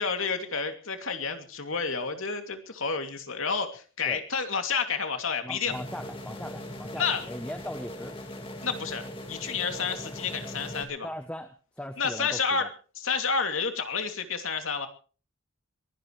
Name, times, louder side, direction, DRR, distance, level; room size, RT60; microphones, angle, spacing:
voice 1, 0.0-5.7 7.0-7.2 8.6-11.1 12.0-12.7 13.0-14.9, left 5 dB, 70° left, 6 dB, 2.7 m, -30 dB
voice 2, 5.4-8.2 11.0-11.5 11.8-12.7, left 1 dB, 5° left, 7 dB, 0.8 m, -39 dB
sound 1, 5.7-10.8, left 1 dB, 25° left, 2.6 m, -40 dB
22.5 x 17.0 x 3.2 m, 0.39 s
head